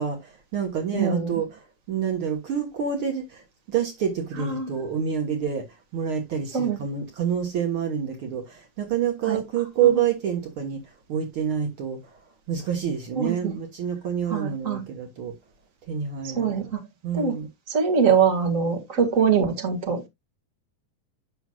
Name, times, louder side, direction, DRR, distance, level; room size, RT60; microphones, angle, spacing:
voice 1, 0.0-1.6 1.9-12.2 12.5-15.3 15.9-16.7 17.0-17.5, right 8 dB, 85° right, 1.1 m, -27 dB
voice 2, 0.9-1.3 4.4-4.7 6.5-6.8 9.3-9.4 9.8-10.0 13.1-13.5 14.3-14.8 16.2-16.8 17.1-17.4 17.7-20.1, right 6 dB, 35° right, 1.3 m, -23 dB
10.0 x 6.1 x 2.3 m
omnidirectional pair, 4.5 m